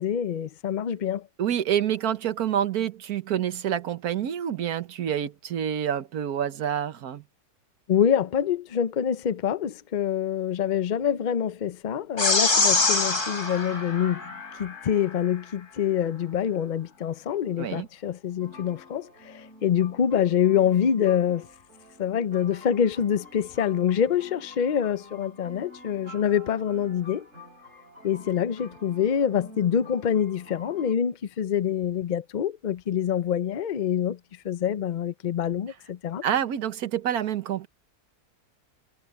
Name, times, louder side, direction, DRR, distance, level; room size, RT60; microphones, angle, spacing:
voice 1, 0.0-1.3 7.9-14.3 14.6-21.5 22.0-27.3 28.0-34.2 34.4-36.2, left 9 dB, 75° left, 0.4 m, -26 dB
voice 2, 1.4-7.2 17.6-17.9 36.2-37.7, right 9 dB, 70° right, 1.5 m, -27 dB
sound 1, 12.2-14.8, left 3 dB, 50° left, 3.4 m, -24 dB
sound 2, 18.4-30.9, left 2 dB, 50° right, 4.7 m, -48 dB
omnidirectional pair, 1.7 m